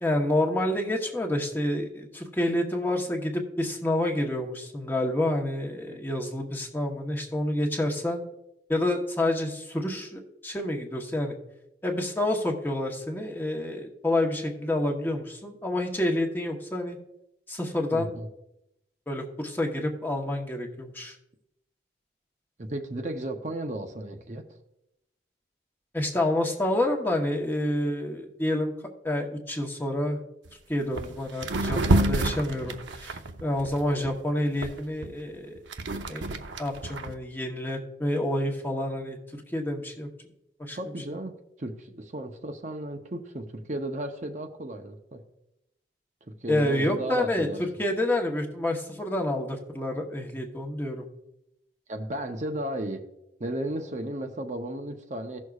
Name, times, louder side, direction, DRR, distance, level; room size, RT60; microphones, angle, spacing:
voice 1, 0.0-8.2 8.7-11.4 11.8-17.0 17.5-18.1 19.1-21.2 25.9-28.7 29.0-30.2 30.7-35.5 36.1-36.3 36.6-40.1 40.6-40.8 46.5-51.1, left 1 dB, 10° left, 1 dB, 1.0 m, -28 dB
voice 2, 17.9-18.3 22.6-24.4 40.7-41.3 41.6-45.2 46.4-47.6 51.9-53.0 53.4-55.4, right 1 dB, 40° right, 5 dB, 0.7 m, -34 dB
sound 1, 30.4-30.5 30.9-31.1 31.4-34.1 34.6-37.1, right 1 dB, 90° right, 0.8 m, -28 dB
16.5 x 6.4 x 2.4 m, 0.85 s
head